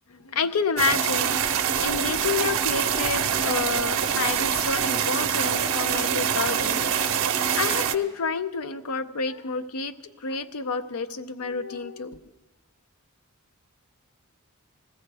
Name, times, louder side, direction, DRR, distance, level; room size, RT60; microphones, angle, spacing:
voice 1, 0.1-12.3, left 4 dB, 85° left, 10 dB, 0.6 m, -29 dB
sound 1, 0.8-8.0, right 8 dB, 60° right, 0.6 m, -25 dB
20.0 x 15.0 x 3.4 m, 1.2 s
head